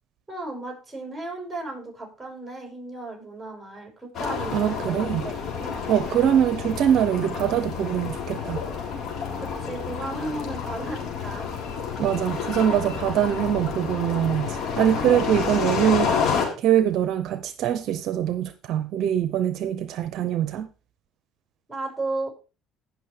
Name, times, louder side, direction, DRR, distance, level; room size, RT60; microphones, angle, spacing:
voice 1, 0.3-5.8 9.4-11.5 21.7-22.3, right 2 dB, 10° right, 1 dB, 6.4 m, -35 dB
sound 1, 4.1-16.5, left 6 dB, 60° left, 3.9 m, -29 dB
voice 2, 4.5-5.3 5.9-8.6 12.0-16.2 16.6-20.7, right 10 dB, 65° right, 12 dB, 0.7 m, -23 dB
18.0 x 6.2 x 3.3 m, 0.33 s
supercardioid pair, 80°, 0 cm